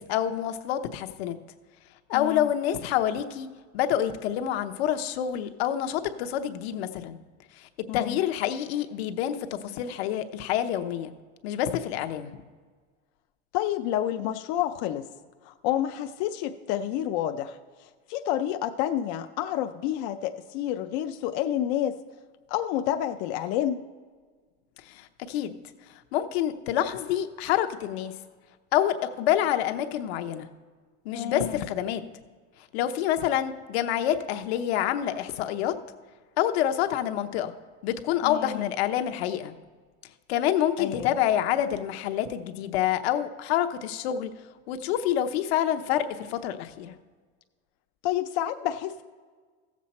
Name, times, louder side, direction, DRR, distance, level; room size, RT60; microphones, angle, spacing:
voice 1, 0.0-1.4 2.1-3.5 3.7-7.2 7.6-11.1 11.4-12.3 24.9-25.6 26.1-28.1 28.7-30.5 31.0-32.0 32.7-35.7 36.4-37.5 37.8-39.5 40.3-44.3 44.7-47.0, left 11 dB, 75° left, 8 dB, 0.9 m, -27 dB
voice 2, 2.1-2.5 7.9-8.2 13.5-15.1 15.4-17.6 18.1-22.0 22.5-23.8 31.1-31.6 38.2-38.7 40.8-41.2 48.0-49.0, left 11 dB, 45° left, 6 dB, 0.4 m, -29 dB
15.0 x 7.4 x 4.2 m, 1.5 s
supercardioid pair, 165°, 32 cm